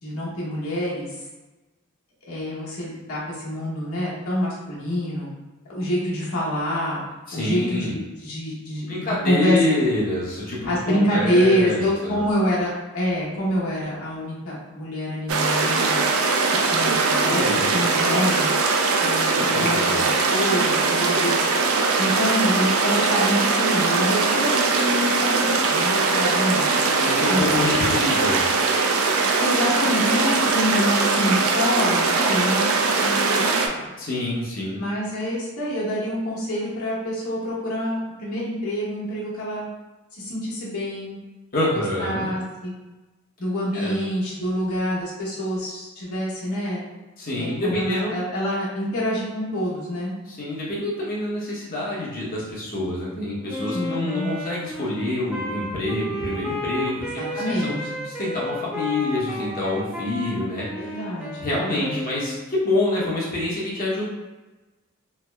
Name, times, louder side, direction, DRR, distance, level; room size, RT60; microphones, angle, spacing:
voice 1, 0.0-1.1 2.3-5.3 5.7-7.0 7.3-9.6 10.6-16.0 16.6-18.5 19.0-21.5 22.0-27.6 29.4-32.7 33.0-33.8 34.6-39.7 40.1-41.2 41.6-42.7 43.4-46.8 47.4-50.1 53.7-54.3 57.2-58.1 60.7-62.0, equal, 80° left, -6 dB, 1.1 m, -26 dB
voice 2, 7.3-7.9 8.9-12.2 17.3-17.8 19.3-20.1 27.0-28.4 34.0-34.8 41.5-42.3 43.7-44.0 47.2-48.2 50.3-57.7 58.0-61.0 61.4-64.0, left 2 dB, 40° left, -5 dB, 0.9 m, -27 dB
sound 1, 15.3-33.7, right 4 dB, 75° right, 0.4 m, -21 dB
Wind instrument woodwind instrument, 53.5-62.5, equal, 5° right, 0.3 m, -33 dB
3.3 x 2.0 x 3.3 m, 1.1 s
head